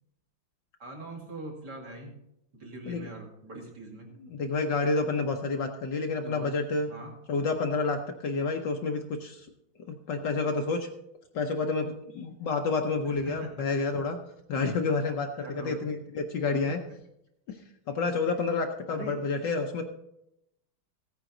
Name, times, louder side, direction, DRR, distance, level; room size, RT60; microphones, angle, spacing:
voice 1, 0.8-2.2 2.5-4.1 6.2-6.5 6.8-7.1 13.0-13.7 14.5-14.8 15.4-15.8 16.7-16.8 18.9-19.2, right 2 dB, 50° right, -1 dB, 2.7 m, -42 dB
voice 2, 4.3-6.9 7.3-9.5 9.9-10.9 11.3-14.2 14.5-16.8 17.5-17.6 17.9-19.8, left 4 dB, 60° left, 4 dB, 1.4 m, -29 dB
15.5 x 9.0 x 3.8 m, 0.83 s
omnidirectional pair, 2.4 m